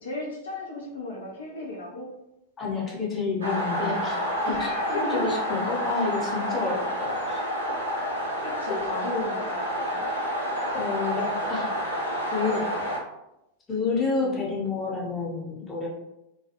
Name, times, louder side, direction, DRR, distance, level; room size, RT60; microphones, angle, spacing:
voice 1, 0.0-2.1 4.5-5.2 8.4-10.0 14.2-14.4, left 2 dB, 65° left, -2 dB, 0.5 m, -35 dB
voice 2, 2.6-4.2 4.5-7.4 8.7-8.9 10.7-11.7 12.3-12.8 13.7-15.9, left 4 dB, 20° left, -4 dB, 0.8 m, -29 dB
sound 1, 3.4-13.0, equal, 80° right, 0.6 m, -29 dB
2.3 x 2.2 x 2.8 m, 0.89 s
figure-of-eight pair, 90°, 0 cm